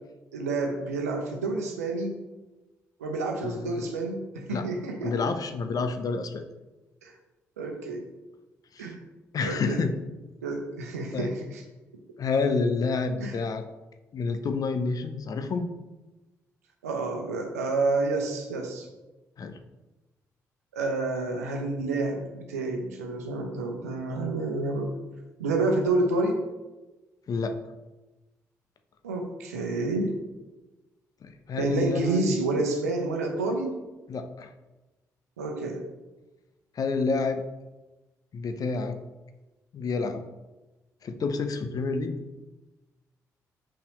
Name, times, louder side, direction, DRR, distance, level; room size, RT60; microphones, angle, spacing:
voice 1, 0.3-2.2 3.0-5.2 7.0-7.1 7.6-8.0 8.8-9.0 9.4-9.8 10.4-11.6 13.2-13.4 16.8-18.9 20.7-24.9 25.4-26.4 29.0-30.2 31.6-33.7 35.4-35.8, right 2 dB, 85° right, 3 dB, 0.8 m, -29 dB
voice 2, 3.4-3.9 4.5-4.7 5.0-6.5 8.7-8.9 9.3-10.0 11.1-11.3 12.2-13.6 14.1-15.7 19.4-19.6 27.3-27.6 31.2-32.2 34.1-34.5 36.8-37.4 38.3-39.0 39.7-40.2 41.0-42.2, left 4 dB, 50° left, 9 dB, 0.7 m, -29 dB
6.5 x 5.6 x 3.1 m, 1.1 s
figure-of-eight pair, 40°, 8 cm